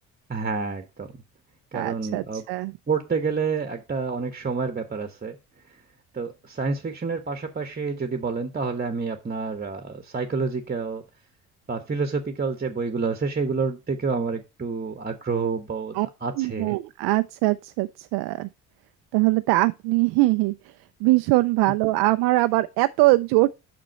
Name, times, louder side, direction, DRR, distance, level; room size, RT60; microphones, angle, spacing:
voice 1, 0.3-1.1 1.7-2.4 2.9-5.4 6.1-11.0 11.7-16.7, right 4 dB, 20° right, 1.2 m, -28 dB
voice 2, 1.7-2.7 15.9-16.1 16.4-18.5 19.1-20.7 21.0-23.5, right 20 dB, 55° right, 0.5 m, -22 dB
7.6 x 6.0 x 4.2 m
hypercardioid pair, 55°, 45 cm